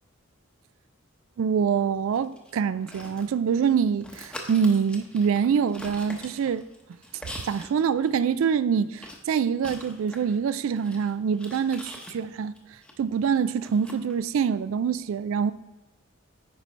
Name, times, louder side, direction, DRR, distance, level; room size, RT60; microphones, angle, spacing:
voice 1, 1.4-6.6 7.4-12.6 13.0-15.5, right 7 dB, 70° right, 0.3 m, -25 dB
sound 1, 2.1-3.7 4.0-7.7 8.0-8.1 9.0-12.9 13.6-14.1, left 1 dB, 5° left, 0.8 m, -43 dB
9.6 x 5.2 x 3.3 m
head